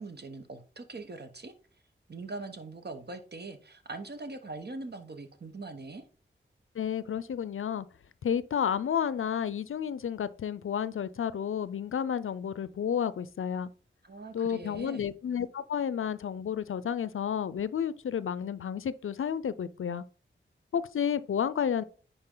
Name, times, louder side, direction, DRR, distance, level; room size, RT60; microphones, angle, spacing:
voice 1, 0.0-1.5 2.1-6.0 14.0-15.1, right 3 dB, 50° right, 1.2 m, -42 dB
voice 2, 6.8-7.9 8.2-13.7 14.3-20.0 20.7-21.8, left 8 dB, 80° left, 0.5 m, -31 dB
9.8 x 4.3 x 3.8 m
wide cardioid pair, 55°, 21 cm